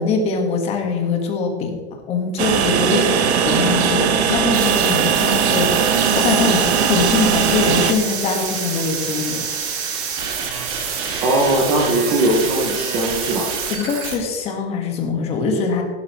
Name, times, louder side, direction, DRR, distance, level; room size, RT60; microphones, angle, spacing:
voice 1, 0.0-1.7 2.1-9.5 13.7-15.8, left 4 dB, 20° left, 3 dB, 1.5 m, -22 dB
Train, 2.4-7.9, right 7 dB, 75° right, 1.3 m, -19 dB
voice 2, 2.8-3.2 11.2-13.5, right 1 dB, 10° right, -1 dB, 0.3 m, -20 dB
sound 1, 4.5-14.2, right 6 dB, 35° right, 1.8 m, -27 dB
15.5 x 12.0 x 3.1 m, 1.5 s
supercardioid pair, 175°, 33 cm